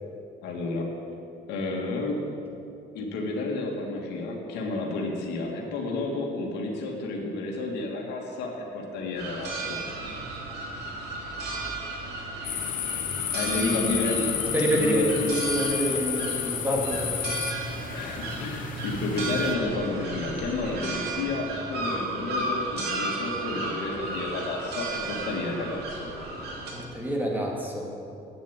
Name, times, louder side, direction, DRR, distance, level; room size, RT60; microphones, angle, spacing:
voice 1, 0.4-0.9 1.5-2.2 2.9-9.8 10.9-11.0 13.3-14.3 14.7-15.3 17.9-26.1, left 2 dB, 85° left, 0 dB, 2.0 m, -31 dB
sound 1, 9.2-26.7, right 2 dB, 75° right, 2.5 m, -34 dB
sound 2, 12.4-19.5, left 10 dB, 50° left, 0.7 m, -32 dB
voice 2, 14.5-17.0 26.7-27.9, right 1 dB, 10° right, -2 dB, 2.3 m, -27 dB
8.8 x 7.3 x 9.0 m, 2.7 s
cardioid pair, 110°, 17 cm